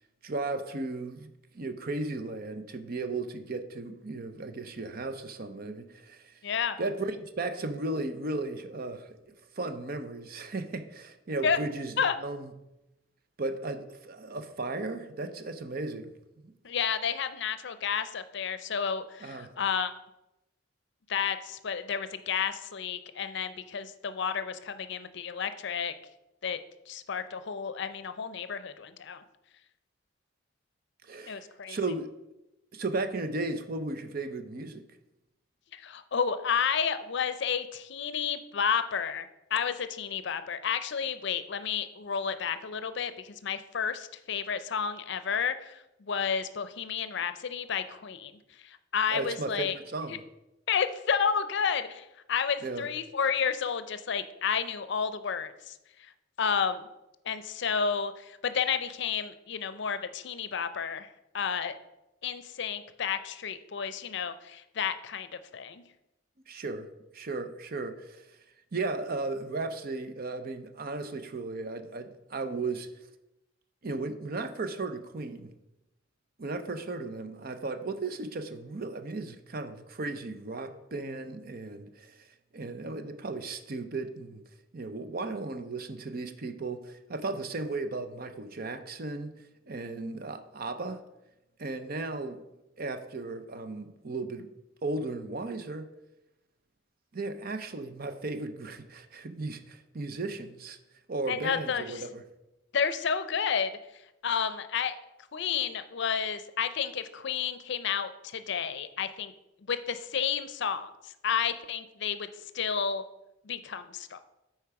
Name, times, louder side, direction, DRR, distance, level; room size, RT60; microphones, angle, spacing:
voice 1, 0.2-6.4 6.8-9.1 9.6-12.5 13.4-16.1 16.4-16.5 19.2-19.5 31.0-32.1 32.7-34.8 49.1-50.2 52.6-52.9 66.5-66.9 67.1-68.3 68.7-72.9 73.8-75.5 76.4-82.3 82.5-84.4 84.7-89.3 89.7-91.0 91.6-92.4 92.8-94.5 94.8-95.9 97.1-100.8 101.1-102.2, right 3 dB, 50° right, 9 dB, 0.7 m, -35 dB
voice 2, 6.4-6.8 11.4-11.6 12.0-12.1 16.6-19.9 21.1-25.9 26.4-26.6 26.9-29.2 31.3-31.8 35.7-39.3 39.5-48.3 48.6-49.7 50.7-55.8 56.4-56.9 57.3-61.1 61.3-61.8 62.2-65.8 101.3-102.0 102.7-103.7 104.2-105.0 105.3-109.3 109.7-112.3 112.5-113.0 113.4-114.2, left 7 dB, 60° left, 12 dB, 0.5 m, -31 dB
8.3 x 4.5 x 5.8 m, 0.93 s
head